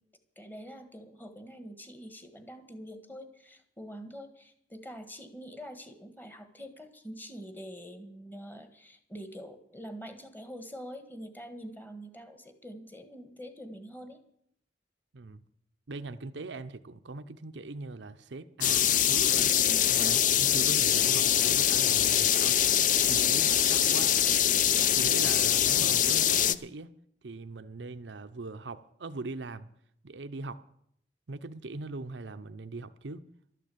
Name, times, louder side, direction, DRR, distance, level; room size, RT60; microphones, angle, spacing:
voice 1, 0.3-14.2 19.6-20.2, equal, 10° left, 1.5 m, -45 dB
voice 2, 15.9-19.5 19.9-24.2 25.0-26.9 27.2-29.7 30.0-30.6 31.3-33.2, right 3 dB, 90° right, 0.7 m, -41 dB
sound 1, 18.6-26.5, left 10 dB, 45° left, 0.5 m, -24 dB
12.5 x 9.1 x 8.5 m
head